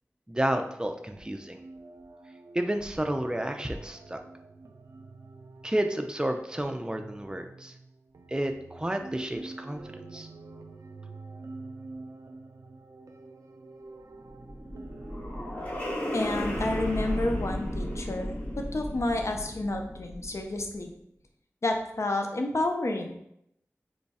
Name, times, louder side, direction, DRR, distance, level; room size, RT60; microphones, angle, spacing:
voice 1, 0.3-1.6 2.5-4.2 5.6-7.7 8.3-9.8 10.1-10.3, right 1 dB, 15° right, 5 dB, 0.4 m, -31 dB
sound 1, 1.1-18.1, right 3 dB, 80° right, 0.3 m, -46 dB
sound 2, 14.1-20.6, equal, 35° left, 1.2 m, -34 dB
voice 2, 16.1-20.9 21.6-23.1, left 2 dB, 60° left, 3 dB, 0.5 m, -30 dB
3.1 x 2.3 x 4.1 m, 0.77 s
wide cardioid pair, 45°, 6 cm